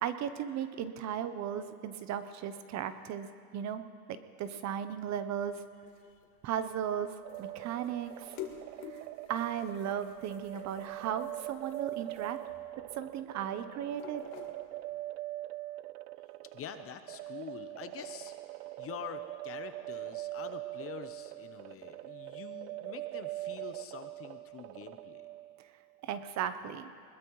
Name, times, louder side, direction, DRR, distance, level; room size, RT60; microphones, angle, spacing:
voice 1, 0.0-3.3 3.5-3.8 4.1-5.6 6.4-7.1 7.4-8.4 8.9-9.0 9.3-12.4 12.9-14.2 26.0-26.9, right 9 dB, 35° right, 11 dB, 0.8 m, -36 dB
sound 1, 5.5-15.1, left 9 dB, 55° left, 2.4 m, -51 dB
sound 2, 7.2-25.7, right 17 dB, 75° right, 0.6 m, -43 dB
voice 2, 16.5-25.3, left 9 dB, 30° left, 9 dB, 0.8 m, -46 dB
22.0 x 20.5 x 3.1 m, 2.4 s
supercardioid pair, 135°, 48 cm